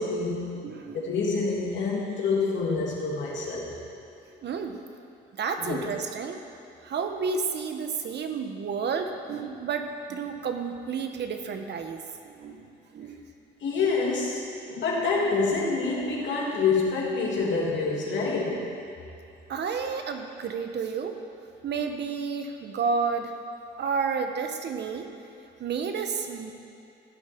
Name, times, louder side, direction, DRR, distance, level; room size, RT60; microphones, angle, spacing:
voice 1, 0.0-0.6 0.9-3.7 5.6-5.8 13.6-14.4 14.7-18.7, left 4 dB, 70° left, -4 dB, 2.8 m, -27 dB
voice 2, 0.6-1.0 4.4-4.8 5.3-6.4 6.8-12.7 12.9-13.2 19.5-21.2 21.6-23.3 23.8-25.1 25.6-26.5, right 5 dB, 60° right, 6 dB, 1.0 m, -31 dB
15.5 x 7.7 x 4.5 m, 2.8 s
cardioid pair, 90°, 20 cm